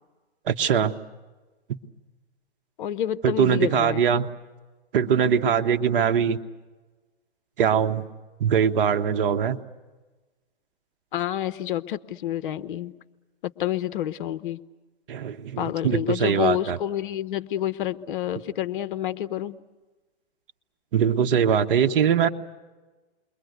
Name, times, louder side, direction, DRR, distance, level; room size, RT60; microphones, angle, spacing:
voice 1, 0.5-0.9 3.2-4.3 4.9-6.4 7.6-8.0 8.4-9.6 15.1-16.8 20.9-22.3, right 8 dB, 55° right, 8 dB, 1.3 m, -22 dB
voice 2, 2.8-4.0 11.1-12.9 13.4-14.6 15.6-19.6, left 12 dB, 50° left, 12 dB, 0.9 m, -28 dB
29.0 x 22.5 x 8.2 m, 1.2 s
hypercardioid pair, 140°, 32 cm